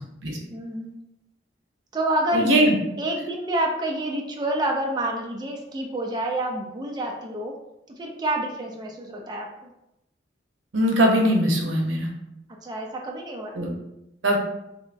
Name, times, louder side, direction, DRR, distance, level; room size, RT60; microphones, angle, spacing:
voice 1, 0.5-1.0 1.9-2.7 3.0-7.5 8.0-9.7 12.6-13.6, right 1 dB, 20° right, 0 dB, 0.4 m, -28 dB
voice 2, 2.3-2.7 10.7-12.1 13.6-13.7 14.2-14.4, equal, 90° right, 1 dB, 0.7 m, -20 dB
3.5 x 2.9 x 2.5 m, 0.88 s
head